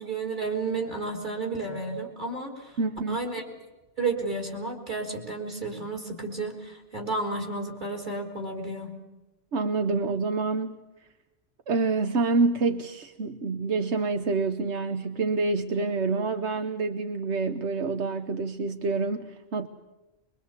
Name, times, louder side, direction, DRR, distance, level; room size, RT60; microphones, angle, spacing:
voice 1, 0.0-2.8 3.1-3.4 4.0-8.9, right 3 dB, 45° right, 3 dB, 4.2 m, -32 dB
voice 2, 2.8-3.2 9.5-10.8 11.7-19.7, right 3 dB, 85° right, 7 dB, 1.4 m, -27 dB
23.5 x 23.0 x 8.2 m, 1.1 s
omnidirectional pair, 1.1 m